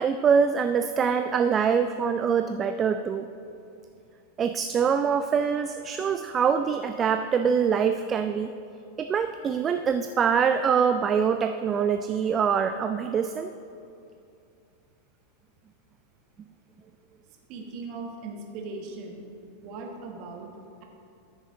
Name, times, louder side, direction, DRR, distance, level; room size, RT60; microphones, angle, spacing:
voice 1, 0.0-3.3 4.4-8.5 9.0-13.5, right 6 dB, 25° right, 8 dB, 0.3 m, -24 dB
voice 2, 17.5-19.2 19.6-20.5, right 3 dB, 40° right, 1 dB, 1.4 m, -38 dB
13.5 x 6.2 x 3.7 m, 2.6 s
figure-of-eight pair, 90°, 0 cm